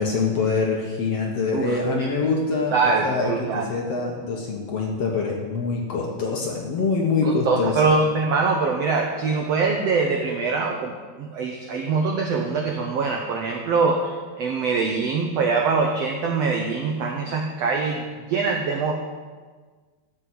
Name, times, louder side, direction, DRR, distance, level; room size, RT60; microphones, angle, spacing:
voice 1, 0.0-2.8 3.0-3.3 3.7-7.9, left 4 dB, 55° left, -1 dB, 2.0 m, -24 dB
voice 2, 1.5-2.1 2.7-3.7 7.4-18.9, right 4 dB, 85° right, 1 dB, 1.4 m, -23 dB
14.0 x 6.1 x 7.9 m, 1.4 s
omnidirectional pair, 4.4 m